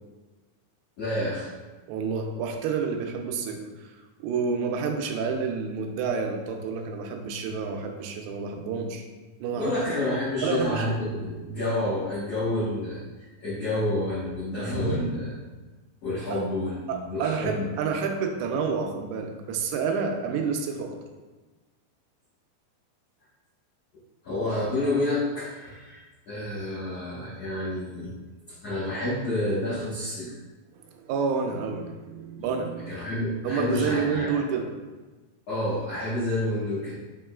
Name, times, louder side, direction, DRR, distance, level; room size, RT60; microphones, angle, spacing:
voice 1, 1.0-1.5 9.5-13.0 13.4-15.3 16.0-16.8 17.1-17.7 24.2-26.0 26.3-28.1 28.6-30.3 32.9-34.3 35.5-37.0, left 1 dB, 75° left, -12 dB, 1.4 m, -29 dB
voice 2, 1.9-3.9 4.2-9.0 9.4-9.8 10.4-11.0 16.3-16.4 16.9-21.0 30.8-33.0 33.4-34.7, right 5 dB, 85° right, 3 dB, 2.8 m, -29 dB
7.2 x 3.0 x 2.3 m, 1.2 s
omnidirectional pair, 5.0 m